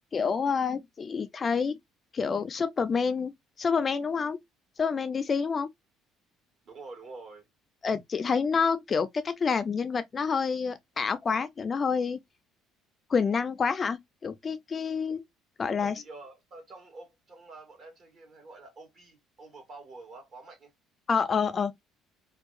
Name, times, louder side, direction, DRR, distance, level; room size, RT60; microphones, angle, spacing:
voice 1, 0.1-1.8 2.1-3.3 3.6-4.4 4.8-5.7 7.8-12.2 13.1-15.2 15.6-16.0 21.1-21.8, left 5 dB, 35° left, 0.3 m, -28 dB
voice 2, 6.6-7.4 15.8-20.7, right 3 dB, 50° right, 1.5 m, -47 dB
2.7 x 2.2 x 2.2 m
cardioid pair, 105°, 0 cm